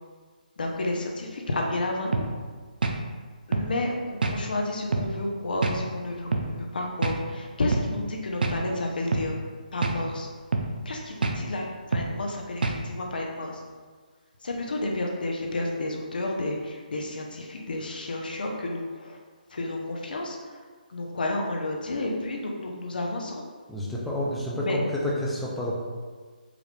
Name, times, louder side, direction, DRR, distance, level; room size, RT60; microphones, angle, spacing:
voice 1, 0.6-2.2 3.5-9.4 9.7-10.3 10.8-13.6 14.4-19.2 19.5-20.6 20.9-23.4 24.5-24.8, left 2 dB, 75° left, 0 dB, 0.7 m, -31 dB
sound 1, 2.1-2.3 2.8-3.0 3.5-3.7 4.2-4.4 4.9-5.1 5.6-5.8 6.3-6.5 7.0-7.2 7.7-7.9 8.4-8.6 9.1-9.3 9.8-10.0 10.5-10.7 11.2-11.4 11.9-12.1 12.6-12.8, right 3 dB, 80° right, 0.5 m, -26 dB
voice 2, 23.7-25.8, left 1 dB, ahead, -6 dB, 0.4 m, -29 dB
4.9 x 2.5 x 3.2 m, 1.5 s
hypercardioid pair, 170°, 5 cm